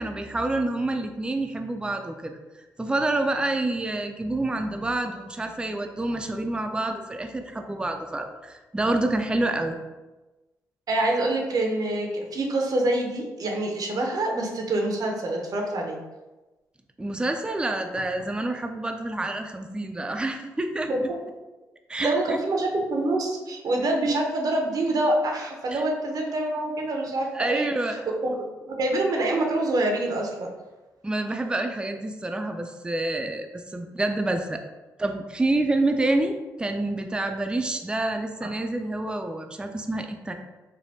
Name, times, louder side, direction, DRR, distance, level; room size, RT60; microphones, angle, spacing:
voice 1, 0.0-2.4 2.8-9.8 17.0-21.1 21.9-22.4 25.7-25.8 27.3-28.0 31.0-34.6 35.0-40.3, right 2 dB, 10° right, 5 dB, 0.4 m, -28 dB
voice 2, 10.9-16.0 20.9-21.0 22.0-30.5, right 2 dB, 55° right, 1 dB, 0.6 m, -26 dB
3.3 x 2.2 x 2.7 m, 1.1 s
hypercardioid pair, 45°, 8 cm